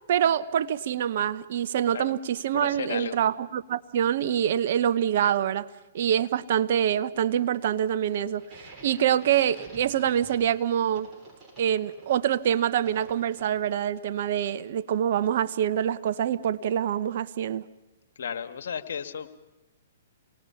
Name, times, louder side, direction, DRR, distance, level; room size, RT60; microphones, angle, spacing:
voice 1, 0.1-5.7 5.9-8.4 8.8-11.1 11.6-17.6, right 9 dB, 55° right, 0.9 m, -25 dB
voice 2, 2.5-3.2 18.1-19.3, left 7 dB, 70° left, 1.5 m, -34 dB
sound 1, 8.4-13.9, right 2 dB, 20° right, 7.4 m, -50 dB
27.0 x 19.5 x 5.7 m
hypercardioid pair, 130°, 0 cm